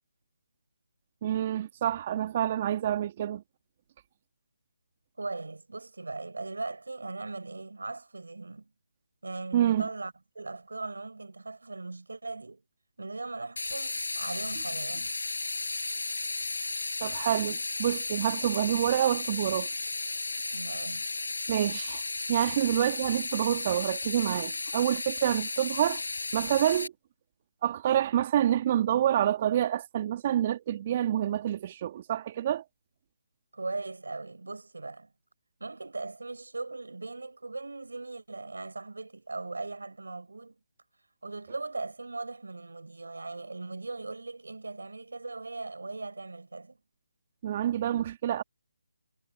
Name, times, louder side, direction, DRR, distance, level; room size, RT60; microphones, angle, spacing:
voice 1, 1.2-3.4 9.5-9.9 17.0-19.7 21.5-22.0 22.3-26.0 26.3-26.9 27.6-32.6 47.4-48.4, right 11 dB, 30° right, 2.1 m, -27 dB
voice 2, 5.2-8.7 9.2-12.6 13.0-15.1 20.5-21.2 33.5-35.1 35.6-40.6 41.2-46.8, right 3 dB, 70° right, 4.7 m, -39 dB
sound 1, 13.6-26.9, left 3 dB, 70° left, 7.8 m, -34 dB
figure-of-eight pair, 150°, 0 cm